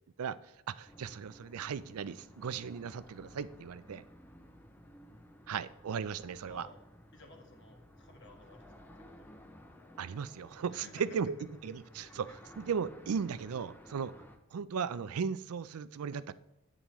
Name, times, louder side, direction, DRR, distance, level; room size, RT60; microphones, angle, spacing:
voice 1, 0.7-4.0 5.5-6.7 10.0-11.4 11.6-14.1 14.5-16.3, right 6 dB, 85° right, 15 dB, 0.4 m, -36 dB
sound 1, 0.9-14.4, equal, 10° left, 0.6 m, -56 dB
voice 2, 6.5-6.8 7.1-9.3 10.7-11.2 11.7-12.4, left 2 dB, 55° left, 3 dB, 1.4 m, -56 dB
10.0 x 9.0 x 3.1 m, 0.87 s
head